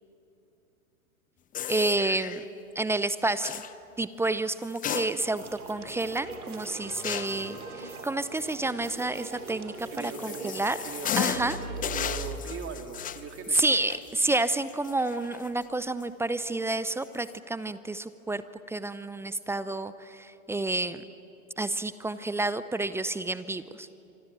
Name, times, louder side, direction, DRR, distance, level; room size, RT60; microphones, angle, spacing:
sound 1, 1.5-2.5 3.4-3.7 4.6-5.5 5.9-6.0 7.0-7.5 9.5-15.6 16.0-16.1 17.0-17.3, left 9 dB, 20° left, 0.8 m, -35 dB
voice 1, 1.7-2.4 2.7-3.6 4.0-5.4 5.7-10.8 11.2-11.6 13.5-18.4 18.7-21.0 21.6-23.9, right 2 dB, 5° right, 14 dB, 0.6 m, -29 dB
sound 2, 5.1-12.4, right 3 dB, 75° right, 4.1 m, -41 dB
voice 2, 9.9-11.5 11.8-13.7, right 5 dB, 30° right, 5 dB, 3.1 m, -40 dB
25.5 x 25.5 x 9.1 m, 2.8 s
figure-of-eight pair, 100°, 44 cm